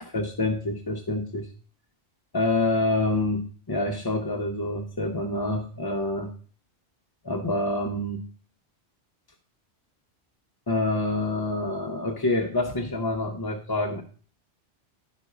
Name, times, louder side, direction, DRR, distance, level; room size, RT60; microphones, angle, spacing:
voice 1, 0.1-1.5 2.3-6.3 7.2-8.2 10.7-14.0, left 2 dB, 25° left, 2 dB, 0.6 m, -27 dB
11.0 x 4.1 x 4.9 m, 0.41 s
omnidirectional pair, 1.2 m